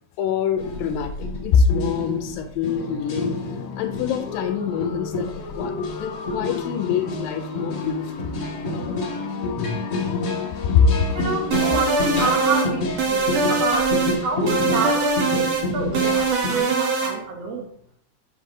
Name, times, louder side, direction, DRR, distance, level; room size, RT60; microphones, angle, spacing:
voice 1, 0.2-3.4 3.8-5.7 6.0-8.3 9.5-9.8 10.7-10.9, left 6 dB, 80° left, 7 dB, 2.2 m, -24 dB
sound 1, 0.6-16.6, left 2 dB, 45° left, 1.5 m, -30 dB
sound 2, 2.7-12.9, left 5 dB, 65° left, 2.7 m, -33 dB
voice 2, 11.1-17.7, right 4 dB, 90° right, 0 dB, 1.4 m, -28 dB
sound 3, 11.5-12.7 13.0-14.2 14.5-15.7 15.9-17.1, right 4 dB, 65° right, 1.8 m, -22 dB
8.2 x 3.7 x 6.2 m, 0.68 s
omnidirectional pair, 4.3 m